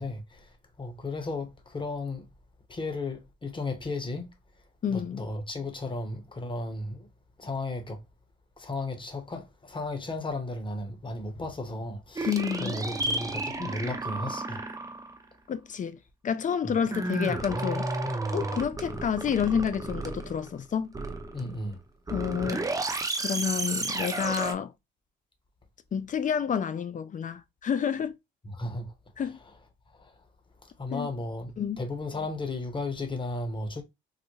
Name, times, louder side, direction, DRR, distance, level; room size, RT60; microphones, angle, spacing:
voice 1, 0.0-2.3 2.7-4.3 4.9-7.1 7.4-8.0 8.6-14.6 16.6-16.7 21.3-21.8 28.4-29.3 29.9-30.2 30.6-33.8, left 2 dB, 25° left, 1.0 m, -35 dB
voice 2, 4.8-5.2 12.3-12.7 15.5-16.0 16.2-17.9 18.3-21.0 22.1-22.7 23.2-24.7 25.9-28.1 29.2-29.4 30.9-31.1 31.6-31.8, left 7 dB, 40° left, 0.5 m, -29 dB
sound 1, 12.2-15.2 16.9-20.6 20.9-21.6 22.1-24.5, right 2 dB, 15° right, 0.6 m, -32 dB
4.0 x 2.1 x 3.1 m
cardioid pair, 90°, 20 cm